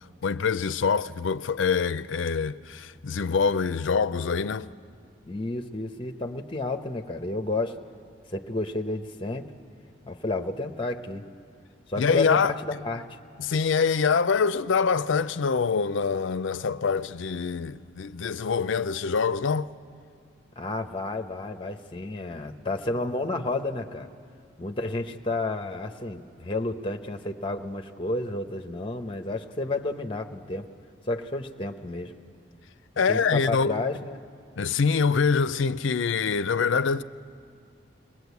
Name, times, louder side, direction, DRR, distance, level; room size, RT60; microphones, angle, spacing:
voice 1, 0.2-4.7 12.0-12.5 13.4-19.7 33.0-33.8 34.6-37.0, left 5 dB, 80° left, 0.5 m, -25 dB
voice 2, 5.2-7.8 8.3-9.5 10.1-11.2 11.9-13.1 20.6-24.1 24.6-30.7 31.1-32.1 33.1-34.2, left 2 dB, 25° left, 0.8 m, -31 dB
22.5 x 19.0 x 8.2 m
head